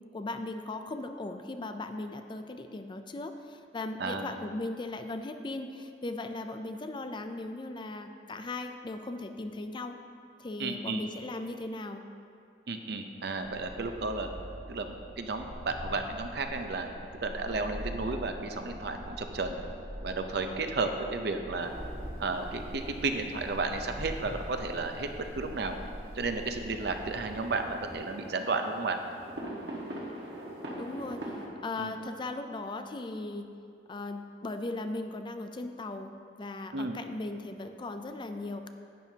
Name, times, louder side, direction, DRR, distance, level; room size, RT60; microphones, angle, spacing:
voice 1, 0.1-10.0 10.4-12.1 30.8-31.3 31.6-33.6 33.9-36.1 36.4-38.7, left 2 dB, 25° left, 7 dB, 0.4 m, -38 dB
voice 2, 4.0-4.3 10.6-11.0 12.7-14.3 14.7-16.9 17.2-19.6 20.0-21.7 22.2-25.8 26.1-29.0 31.8-32.0 36.7-37.0, right 3 dB, 65° right, 6 dB, 0.7 m, -33 dB
sound 1, 13.4-27.9, equal, 30° right, 0.8 m, -43 dB
sound 2, 21.6-31.5, right 1 dB, 85° right, 1.5 m, -45 dB
10.5 x 9.0 x 2.8 m, 2.4 s
head